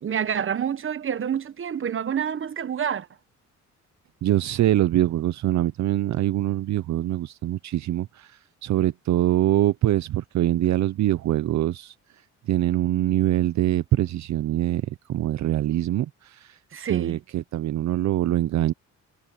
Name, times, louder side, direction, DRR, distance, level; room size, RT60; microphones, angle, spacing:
voice 1, 0.0-3.1 16.7-17.2, right 8 dB, 45° right, 1.2 m, -28 dB
voice 2, 4.2-11.9 12.5-16.6 16.9-18.7, right 13 dB, 65° right, 0.7 m, -24 dB
cardioid pair, 90°, 30 cm